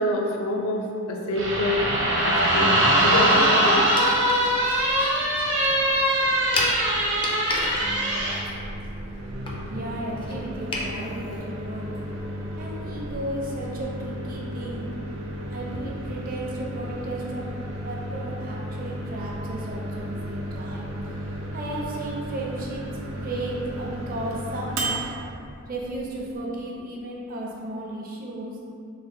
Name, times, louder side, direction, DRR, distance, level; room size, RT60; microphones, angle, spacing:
voice 1, 0.0-1.8 2.2-2.7 3.0-3.9, left 1 dB, 85° left, 0 dB, 0.5 m, -26 dB
sound 1, 1.4-8.4, right 1 dB, 60° right, 0.9 m, -22 dB
sound 2, 3.9-10.9, left 2 dB, 25° left, 0.3 m, -33 dB
Microwave oven, 7.5-26.3, right 1 dB, 85° right, 0.5 m, -34 dB
voice 2, 9.7-12.0 12.6-14.9 15.5-20.9 21.5-22.9 23.2-25.1 25.7-28.6, right 1 dB, 45° right, -3 dB, 0.5 m, -34 dB
3.6 x 2.1 x 3.6 m, 2.5 s
head